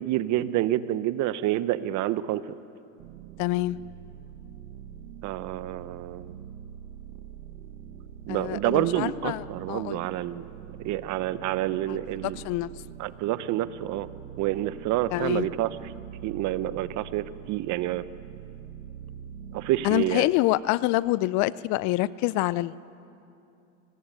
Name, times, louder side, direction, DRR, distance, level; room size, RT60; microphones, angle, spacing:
voice 1, 0.0-2.5 5.2-6.3 8.3-12.4 13.0-14.1 14.4-15.9 16.2-18.0 19.5-20.3, right 14 dB, 45° right, 15 dB, 1.0 m, -28 dB
sound 1, 3.0-19.9, right 9 dB, 65° right, 1.6 m, -44 dB
voice 2, 3.4-3.8 8.3-10.0 11.9-12.0 12.2-12.7 15.1-15.5 19.8-22.8, left 18 dB, 45° left, 20 dB, 0.5 m, -26 dB
24.0 x 19.5 x 9.0 m, 2.6 s
supercardioid pair, 115°, 40 cm